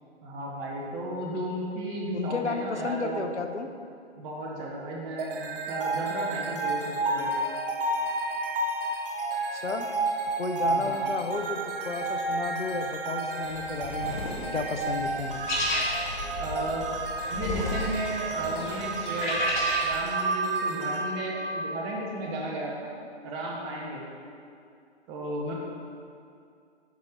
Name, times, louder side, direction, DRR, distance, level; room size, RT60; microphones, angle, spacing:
voice 1, 0.2-3.3 4.2-7.3 10.6-11.0 16.4-16.8 17.3-19.4 19.8-22.7 23.2-24.0 25.1-25.5, right 1 dB, 15° right, -2 dB, 0.7 m, -34 dB
voice 2, 2.1-3.7 9.5-9.9 10.4-14.2 14.5-15.5, left 4 dB, 80° left, 6 dB, 0.8 m, -32 dB
sound 1, 5.2-22.3, right 3 dB, 50° right, 0.9 m, -31 dB
sound 2, 13.4-20.0, left 1 dB, 45° left, 1.7 m, -33 dB
9.6 x 4.2 x 4.9 m, 2.4 s
figure-of-eight pair, 130°, 34 cm